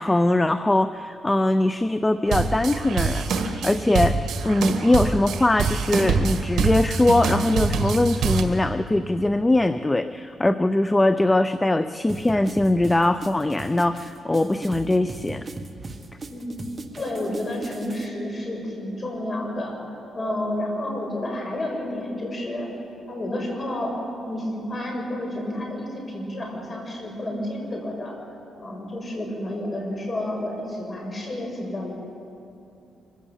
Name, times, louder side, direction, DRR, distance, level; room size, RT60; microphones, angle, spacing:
voice 1, 0.0-4.2 4.4-15.5, left 2 dB, 15° left, 12 dB, 0.5 m, -21 dB
sound 1, 2.3-8.4, right 4 dB, 75° right, 1.8 m, -25 dB
sound 2, 12.1-18.1, right 3 dB, 35° right, 1.4 m, -38 dB
voice 2, 16.3-16.6 16.9-19.7 20.1-22.7 23.1-23.9 24.2-28.1 28.6-31.9, left 1 dB, 35° left, 1 dB, 5.6 m, -30 dB
25.0 x 15.5 x 7.3 m, 2.7 s
cardioid pair, 100°, 0 cm